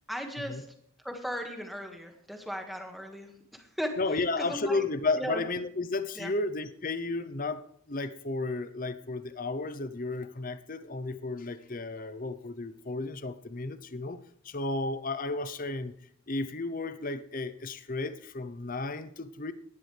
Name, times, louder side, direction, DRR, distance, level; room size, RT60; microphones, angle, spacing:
voice 1, 0.1-0.7 1.0-3.9 4.4-4.8 5.2-5.4 6.1-6.3, equal, ahead, 3 dB, 1.8 m, -37 dB
voice 2, 4.0-14.2 14.4-15.9 16.3-19.5, left 3 dB, 40° left, 13 dB, 0.7 m, -33 dB
18.5 x 12.5 x 3.4 m, 0.68 s
head